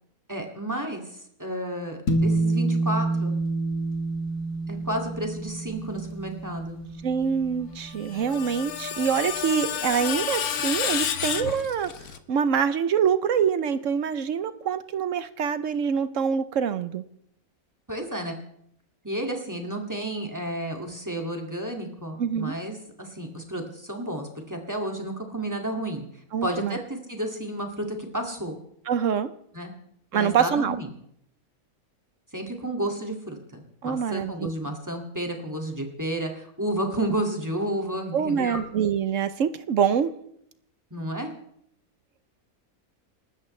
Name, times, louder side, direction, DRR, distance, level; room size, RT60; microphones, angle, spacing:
voice 1, 0.3-3.3 4.7-6.8 17.9-18.3 19.0-26.0 26.4-28.6 29.5-29.7 30.1-30.9 32.3-38.6 40.9-41.3, right 1 dB, 10° right, 2 dB, 2.1 m, -31 dB
sound 1, 2.1-8.7, right 2 dB, 65° left, 2.0 m, -28 dB
voice 2, 7.0-11.9 12.3-17.0 22.2-22.6 26.3-26.8 28.9-29.3 30.1-30.8 33.8-34.5 38.1-40.1, right 7 dB, 65° right, 13 dB, 1.0 m, -25 dB
Screech, 7.9-12.2, left 9 dB, 85° left, 1.4 m, -30 dB
28.0 x 13.0 x 3.2 m, 0.70 s
omnidirectional pair, 1.6 m